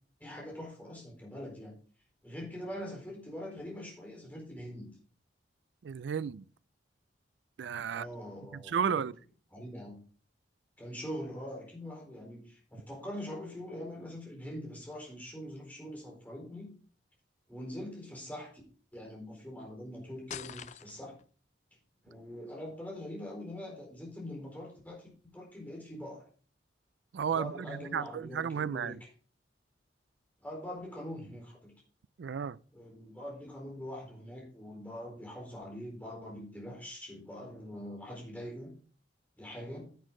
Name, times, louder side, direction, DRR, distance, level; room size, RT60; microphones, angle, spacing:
voice 1, 0.2-1.7 2.2-4.9 7.9-9.0 9.5-10.0 10.8-16.7 17.5-18.6 18.9-21.2 22.0-26.3 27.3-29.0 30.4-31.7 32.7-38.7 39.4-39.9, equal, 10° left, 4.2 m, -43 dB
voice 2, 5.8-6.4 7.6-8.1 8.5-9.2 27.1-29.0 32.2-32.6, right 7 dB, 70° right, 0.4 m, -33 dB
sound 1, 20.3-21.2, left 8 dB, 40° left, 0.4 m, -44 dB
10.5 x 8.3 x 3.8 m
head